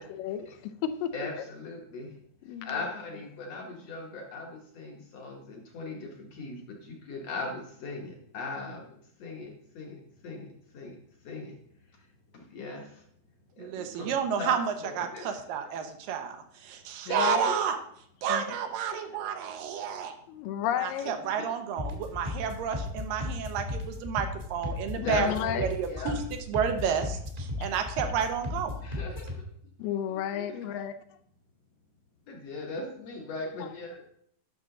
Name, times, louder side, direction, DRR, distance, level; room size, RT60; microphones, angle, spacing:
voice 1, 0.0-1.1 2.5-2.7 17.1-17.5 18.3-18.4 20.3-21.2 24.9-25.7 27.6-27.7 29.8-30.9, left 10 dB, 80° left, 10 dB, 2.2 m, -32 dB
voice 2, 1.1-2.1 2.6-8.9 9.2-10.5 10.7-11.0 11.2-11.5 12.3-12.9 13.6-14.6 14.8-15.3 17.1-17.6 18.9-19.0 21.2-21.5 21.9-22.0 25.0-26.1 28.8-29.3 30.1-30.6 32.3-34.0, left 3 dB, 60° left, 0 dB, 1.8 m, -39 dB
voice 3, 13.6-17.8 18.2-20.1 20.8-25.3 25.6-26.2 26.5-28.7, right 8 dB, 80° right, 6 dB, 2.5 m, -31 dB
sound 1, 21.8-29.4, left 2 dB, 30° right, 0.7 m, -36 dB
10.5 x 6.2 x 3.8 m, 0.68 s
omnidirectional pair, 4.0 m